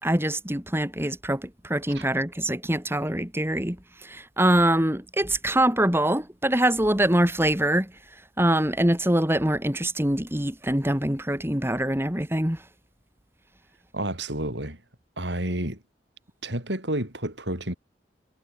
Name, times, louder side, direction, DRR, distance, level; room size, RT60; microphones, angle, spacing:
voice 1, 0.0-7.9 8.4-12.6, right 1 dB, 15° right, 4.5 m, -24 dB
voice 2, 13.9-14.8 15.2-15.8 16.4-17.8, right 1 dB, 85° right, 7.2 m, -30 dB
head